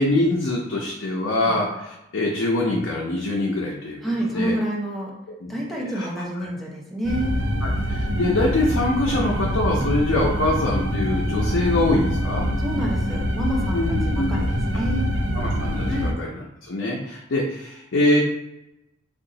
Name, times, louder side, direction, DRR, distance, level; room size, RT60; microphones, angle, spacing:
voice 1, 0.0-4.0 4.3-4.6 5.4-5.6 5.9-6.1 7.6-12.5 13.7-14.4 15.3-16.3 16.6-18.2, left 2 dB, 80° left, -2 dB, 0.6 m, -24 dB
voice 2, 4.0-5.1 5.5-7.3 9.7-9.9 12.6-15.1 15.9-16.2, equal, ahead, -4 dB, 0.7 m, -28 dB
sound 1, 7.0-16.1, equal, 80° right, 0.5 m, -25 dB
2.7 x 2.4 x 3.9 m, 0.92 s
head